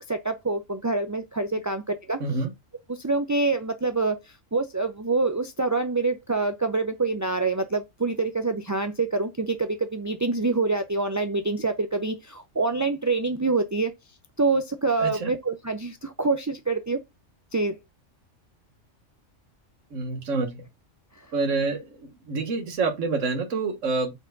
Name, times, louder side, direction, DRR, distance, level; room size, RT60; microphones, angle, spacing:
voice 1, 0.1-2.2 2.9-4.2 4.5-13.9 14.4-17.0 17.5-17.7, right 3 dB, 25° right, 0.4 m, -26 dB
voice 2, 15.0-15.3 19.9-20.6 21.3-24.1, right 3 dB, 70° right, 1.7 m, -27 dB
8.7 x 4.6 x 3.9 m
omnidirectional pair, 1.3 m